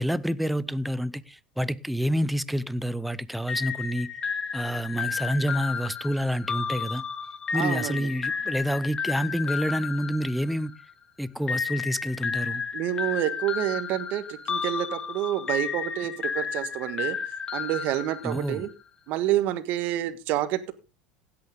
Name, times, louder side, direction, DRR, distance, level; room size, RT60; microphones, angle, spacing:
voice 1, 0.0-4.1 4.5-7.0 7.5-10.7 11.2-12.6 18.2-18.7, equal, ahead, 0.6 m, -28 dB
sound 1, 3.5-10.9 11.5-18.7, left 6 dB, 25° left, 1.1 m, -32 dB
voice 2, 7.5-8.1 12.7-17.2 17.5-18.7 19.1-20.7, right 13 dB, 55° right, 1.5 m, -28 dB
16.0 x 8.6 x 3.7 m
supercardioid pair, 130°, 3 cm